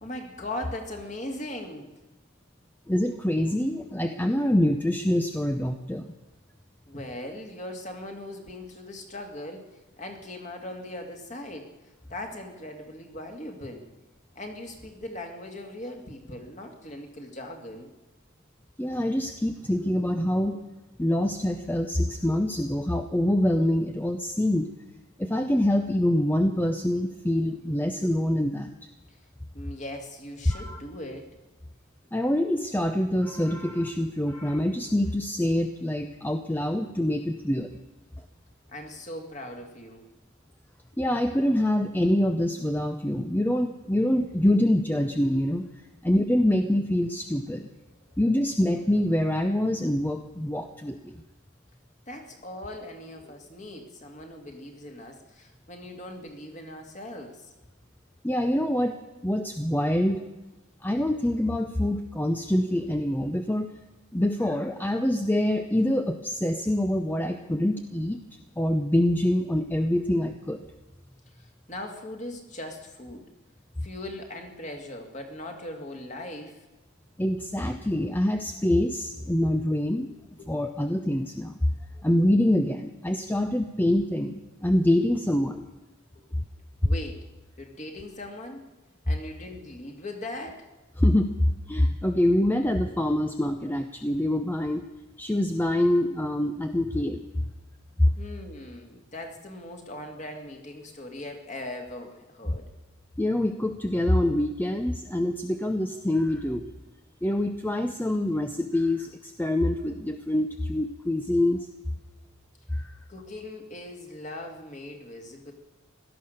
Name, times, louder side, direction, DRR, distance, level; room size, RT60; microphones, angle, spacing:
voice 1, 0.0-1.9 6.9-9.7 10.0-11.7 12.1-13.8 14.4-17.9 29.1-29.2 29.5-31.3 38.7-40.0 48.0-48.2 52.1-57.5 71.4-73.3 73.8-76.6 86.8-87.2 87.6-88.6 89.1-90.7 98.2-102.7 113.1-115.5, left 1 dB, 35° left, 3 dB, 2.3 m, -39 dB
voice 2, 2.9-6.1 18.8-20.6 21.0-24.7 25.2-28.7 30.5-30.8 32.1-37.7 41.0-45.7 46.0-47.7 48.2-51.2 58.2-59.0 59.2-60.2 60.8-63.7 64.1-68.2 68.6-70.6 77.2-80.1 80.5-81.7 82.0-85.6 91.0-94.8 95.2-97.2 98.0-98.1 102.5-102.6 103.2-106.7 107.2-111.7 112.7-112.9, left 1 dB, 10° left, 6 dB, 0.6 m, -25 dB
17.0 x 12.5 x 6.6 m, 1.1 s
head